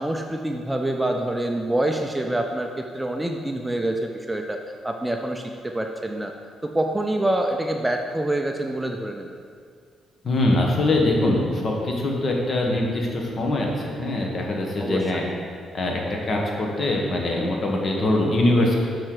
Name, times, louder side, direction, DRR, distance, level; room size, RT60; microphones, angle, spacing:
voice 1, 0.0-4.6 4.8-6.3 6.6-9.3 14.8-15.3, right 1 dB, 10° right, 3 dB, 0.4 m, -26 dB
voice 2, 10.2-15.2 15.7-18.8, left 1 dB, 45° left, 0 dB, 1.3 m, -23 dB
7.5 x 5.4 x 3.9 m, 2.1 s
cardioid pair, 95°, 0 cm